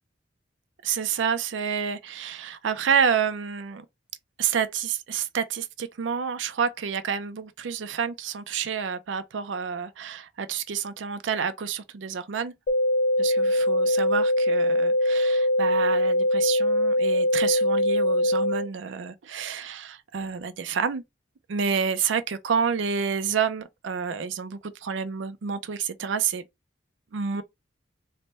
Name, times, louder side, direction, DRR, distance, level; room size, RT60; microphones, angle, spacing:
voice 1, 0.8-3.8 4.4-12.5 13.2-21.0 21.5-26.4 27.1-27.4, right 7 dB, 80° right, 0.5 m, -29 dB
sound 1, 12.7-18.7, left 1 dB, 55° left, 0.4 m, -22 dB
3.3 x 2.2 x 3.9 m
head